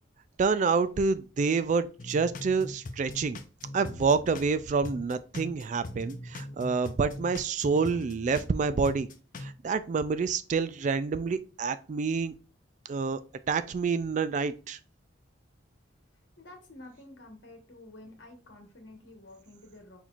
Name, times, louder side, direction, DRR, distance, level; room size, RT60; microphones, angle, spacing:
voice 1, 0.4-3.4 3.7-9.1 9.4-12.3 12.9-13.2 13.5-14.8, right 4 dB, 40° right, 0.3 m, -28 dB
sound 1, 2.0-4.5 4.8-8.5 8.8-9.5, left 1 dB, 45° left, 0.5 m, -41 dB
voice 2, 16.4-20.0, left 2 dB, 70° left, 1.3 m, -50 dB
4.4 x 4.1 x 2.4 m
head